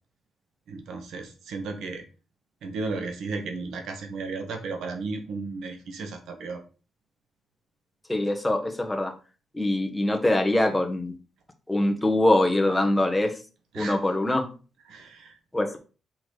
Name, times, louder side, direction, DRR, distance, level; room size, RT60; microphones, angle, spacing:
voice 1, 0.7-2.0 2.6-6.6 13.7-14.0 14.9-15.4, right 3 dB, 85° right, 5 dB, 1.5 m, -34 dB
voice 2, 8.1-9.1 9.5-11.2 11.7-13.4 13.7-14.5 15.5-15.8, left 1 dB, 5° left, 3 dB, 1.2 m, -23 dB
6.0 x 4.2 x 4.9 m, 0.35 s
cardioid pair, 135°, 0 cm